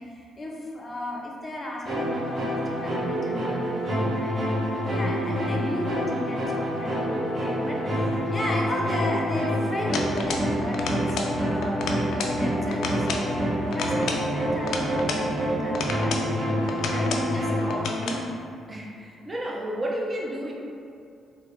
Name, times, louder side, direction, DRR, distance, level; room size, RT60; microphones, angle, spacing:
voice 1, 0.0-4.4 4.9-10.0 10.3-18.3, left 1 dB, 30° left, -2 dB, 0.6 m, -35 dB
sound 1, 1.8-17.8, equal, 40° right, 1.1 m, -27 dB
sound 2, 9.9-10.5 10.7-11.4 11.6-12.4 12.7-13.3 13.7-15.3 15.7-16.3 16.7-17.3 17.7-18.2, left 4 dB, 75° left, 0.3 m, -32 dB
voice 2, 18.7-20.5, right 1 dB, 25° right, -3 dB, 0.6 m, -31 dB
3.9 x 2.1 x 3.3 m, 2.5 s
cardioid pair, 90°, 0 cm